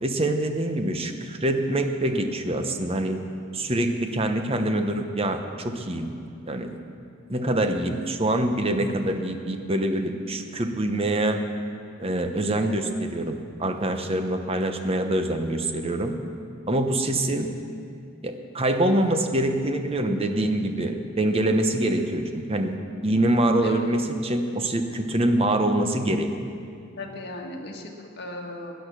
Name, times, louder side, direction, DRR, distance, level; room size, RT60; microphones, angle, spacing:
voice 1, 0.0-3.2 3.5-6.1 6.5-6.7 7.3-11.4 12.0-16.1 16.7-17.5 18.2-22.8 23.0-26.3, right 1 dB, 30° right, 6 dB, 1.0 m, -25 dB
voice 2, 27.0-28.7, left 2 dB, 55° left, 1 dB, 1.8 m, -37 dB
17.0 x 10.5 x 6.3 m, 2.4 s
head